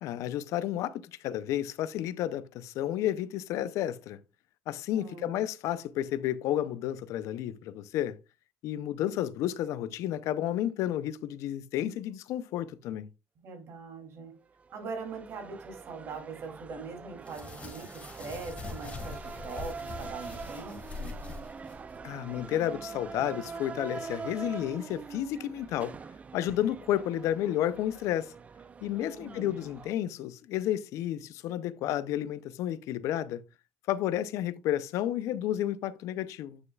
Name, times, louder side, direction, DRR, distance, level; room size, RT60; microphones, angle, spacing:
voice 1, 0.0-4.2 4.7-8.2 8.6-13.1 22.0-25.9 26.3-28.3 28.8-33.4 33.9-36.6, left 12 dB, 75° left, 0.5 m, -31 dB
voice 2, 4.9-5.4 13.4-14.3 14.7-21.2 29.0-29.6, right 4 dB, 55° right, 2.8 m, -42 dB
sound 1, 14.6-29.9, right 5 dB, 25° right, 0.4 m, -44 dB
sound 2, 17.2-22.0, left 4 dB, 25° left, 1.8 m, -43 dB
9.2 x 6.4 x 2.3 m
cardioid pair, 125°, 5 cm